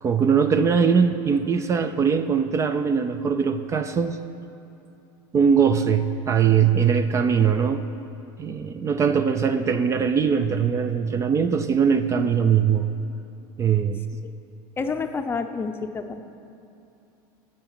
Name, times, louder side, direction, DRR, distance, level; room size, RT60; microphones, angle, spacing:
voice 1, 0.0-4.2 5.3-7.9 8.4-12.9 13.6-14.0, right 6 dB, 25° right, 9 dB, 0.5 m, -21 dB
voice 2, 14.8-16.2, left 4 dB, 20° left, 7 dB, 0.6 m, -29 dB
10.5 x 7.9 x 8.8 m, 2.7 s
supercardioid pair, 135°, 12 cm